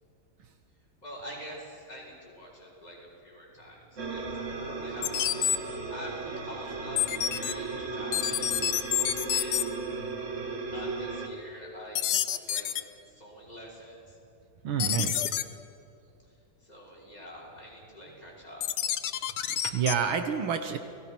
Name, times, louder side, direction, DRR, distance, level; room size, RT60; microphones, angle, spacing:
voice 1, 1.0-8.6 9.1-9.7 10.7-12.0 12.3-12.7 13.1-14.2 16.6-18.6, equal, 20° left, -4 dB, 6.2 m, -46 dB
sound 1, 4.0-11.3, right 3 dB, 35° right, 2.0 m, -36 dB
sound 2, 5.0-5.6 7.0-7.5 8.1-9.6 12.0-12.8 14.8-15.4 18.6-20.0, left 11 dB, 90° left, 1.8 m, -28 dB
voice 2, 14.6-15.3 19.4-20.8, right 7 dB, 75° right, 8 dB, 1.9 m, -29 dB
29.5 x 19.5 x 6.1 m, 2.7 s
omnidirectional pair, 2.3 m